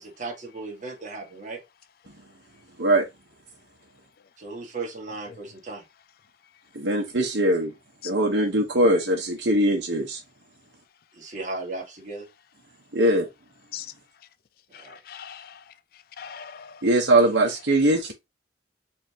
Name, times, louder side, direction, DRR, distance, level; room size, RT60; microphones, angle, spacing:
voice 1, 0.0-1.6 4.4-5.8 11.1-12.3 14.7-15.0, right 3 dB, 45° right, 1.8 m, -36 dB
voice 2, 6.7-7.7 8.0-10.2 12.9-13.3 16.8-18.1, right 1 dB, 80° right, 1.1 m, -21 dB
voice 3, 14.7-15.7 16.2-16.9, left 9 dB, 55° left, 0.4 m, -40 dB
4.9 x 3.6 x 2.8 m
head